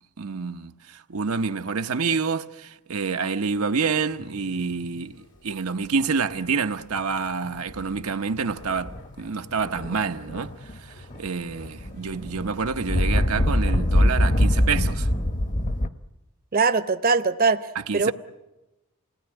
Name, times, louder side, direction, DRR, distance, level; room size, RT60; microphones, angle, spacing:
voice 1, 0.2-15.1 17.7-18.1, right 5 dB, 80° right, 0.8 m, -28 dB
sound 1, 4.1-13.5, left 1 dB, 75° left, 4.8 m, -49 dB
sound 2, 7.7-8.0 8.6-9.1 9.6-10.8 11.1-15.9, left 1 dB, 40° left, 1.0 m, -23 dB
voice 2, 16.5-18.1, right 4 dB, 45° right, 0.8 m, -22 dB
28.0 x 19.0 x 9.9 m
head